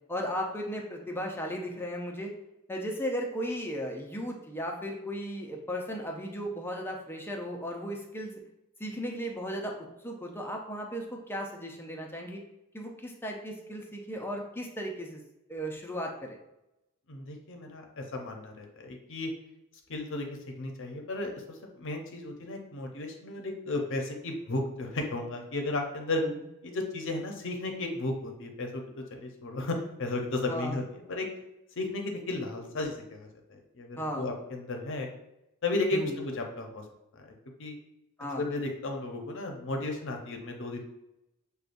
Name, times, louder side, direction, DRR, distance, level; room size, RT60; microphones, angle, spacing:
voice 1, 0.1-2.3 2.7-8.3 8.8-9.7 10.0-12.4 12.7-15.2 15.5-16.4 26.2-26.4 30.5-30.8 34.0-34.3 35.9-36.2 38.2-38.5, equal, 10° left, 0 dB, 0.5 m, -36 dB
voice 2, 17.1-19.3 19.9-26.2 26.6-28.8 29.1-31.3 31.8-35.1 35.6-36.8 37.6-37.7 38.4-40.9, left 2 dB, 60° left, 3 dB, 0.7 m, -34 dB
6.5 x 2.3 x 2.5 m, 0.88 s
head